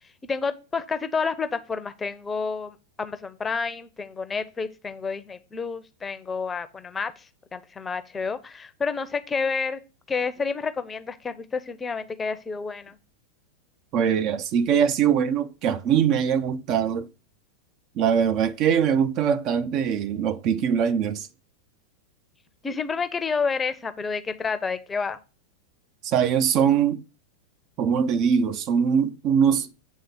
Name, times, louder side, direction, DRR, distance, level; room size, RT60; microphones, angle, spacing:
voice 1, 0.2-7.3 7.5-9.8 10.1-13.0 22.6-25.2, left 5 dB, 15° left, 0.7 m, -29 dB
voice 2, 13.9-17.1 18.0-21.3 26.0-27.0 27.8-29.7, right 7 dB, 40° right, 0.6 m, -22 dB
8.6 x 3.6 x 6.8 m
figure-of-eight pair, 90°, 0 cm